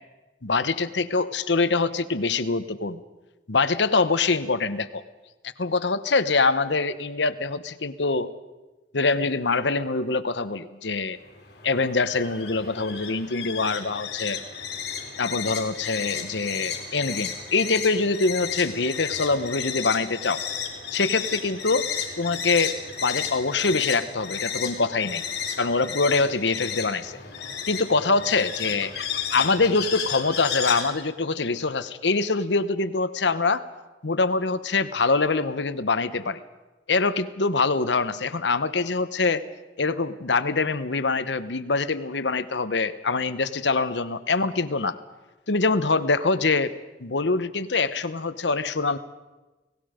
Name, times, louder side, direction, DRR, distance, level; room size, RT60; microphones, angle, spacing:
voice 1, 0.4-3.0 3.5-5.0 5.6-8.3 8.9-11.2 11.6-14.4 15.2-20.4 20.9-21.9 22.2-25.2 25.6-27.2 27.7-33.6 34.0-36.4 36.9-39.4 39.8-45.0 45.5-46.7 47.0-49.0, left 3 dB, 80° left, 13 dB, 1.0 m, -24 dB
sound 1, 11.2-30.9, left 7 dB, 60° left, 3.5 m, -33 dB
30.0 x 18.5 x 5.1 m, 1.2 s
head